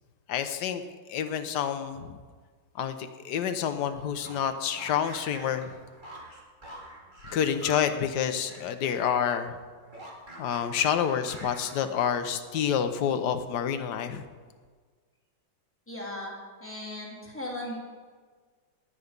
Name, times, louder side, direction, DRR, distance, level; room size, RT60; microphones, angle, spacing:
voice 1, 0.3-0.8 1.1-2.2 2.8-5.7 7.3-9.6 10.4-14.2, left 8 dB, 65° left, 8 dB, 1.4 m, -28 dB
sound 1, 4.1-8.8 9.1-12.3, right 1 dB, 25° right, 2.5 m, -46 dB
voice 2, 15.9-17.8, left 1 dB, 5° left, -5 dB, 3.4 m, -37 dB
20.0 x 8.4 x 5.3 m, 1.5 s
omnidirectional pair, 2.0 m